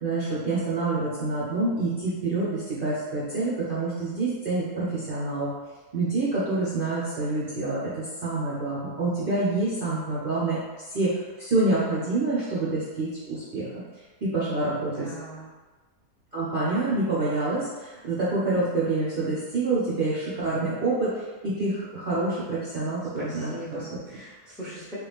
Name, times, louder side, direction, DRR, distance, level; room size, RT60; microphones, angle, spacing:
voice 1, 0.0-5.5 5.9-10.6 10.9-13.7 14.2-15.1 16.3-23.8, right 2 dB, 45° right, -9 dB, 0.7 m, -27 dB
voice 2, 14.7-15.5 23.2-25.0, right 1 dB, ahead, -7 dB, 0.6 m, -40 dB
3.3 x 2.3 x 3.4 m, 1.3 s
omnidirectional pair, 1.6 m